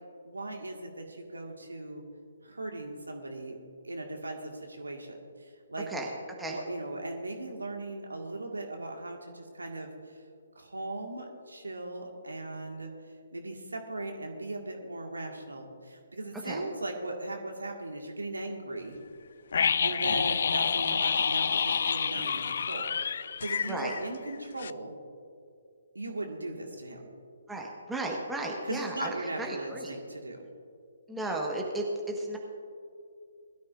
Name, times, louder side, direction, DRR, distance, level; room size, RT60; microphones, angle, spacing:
voice 1, 0.2-2.0 2.4-3.6 3.8-5.9 6.5-10.2 10.6-12.9 13.3-19.0 19.8-25.0 25.9-27.1 28.6-30.5, right 2 dB, 75° right, 2 dB, 2.0 m, -38 dB
sound 1, 19.5-24.3 24.6-24.7, left 6 dB, 55° left, 0.3 m, -28 dB
voice 2, 27.5-29.9 31.1-32.4, right 2 dB, 5° right, -1 dB, 1.5 m, -34 dB
21.0 x 13.0 x 2.6 m, 2.3 s
figure-of-eight pair, 135°, 0 cm